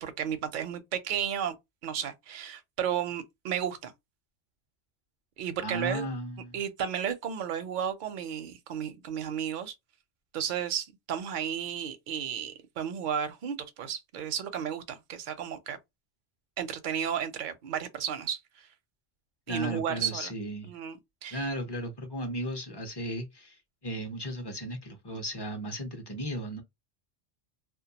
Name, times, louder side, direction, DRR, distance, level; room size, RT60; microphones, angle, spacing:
voice 1, 0.0-1.6 1.8-3.9 5.4-6.1 6.5-9.7 10.3-15.8 16.6-18.4 19.5-20.3 20.6-21.5 25.1-25.2, right 8 dB, 60° right, 0.5 m, -33 dB
voice 2, 5.6-6.6 19.5-20.7 21.3-23.6 23.8-26.6, equal, 30° left, 0.5 m, -35 dB
2.2 x 2.2 x 2.7 m
omnidirectional pair, 1.2 m